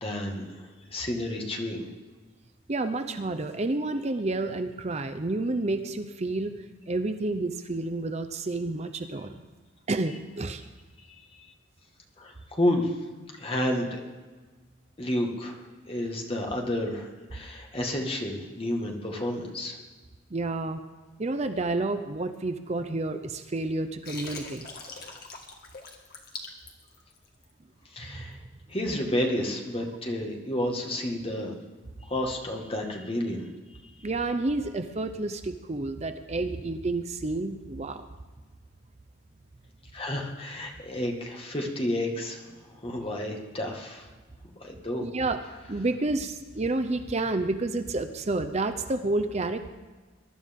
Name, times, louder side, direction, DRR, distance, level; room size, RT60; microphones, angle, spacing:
voice 1, 0.0-1.9 11.3-11.5 12.2-13.0 13.4-14.1 15.0-19.8 27.9-28.4 28.7-31.6 32.0-33.5 39.9-42.5 42.7-44.1 44.6-45.1, left 1 dB, 30° left, 1 dB, 1.9 m, -31 dB
voice 2, 2.7-6.5 6.9-9.4 9.9-10.6 20.3-20.8 21.2-24.6 34.0-38.1 45.0-45.4 45.7-49.7, right 2 dB, 35° right, 9 dB, 0.7 m, -30 dB
Water, 24.0-27.5, left 3 dB, 55° left, 1.9 m, -42 dB
22.0 x 12.0 x 3.7 m, 1.3 s
head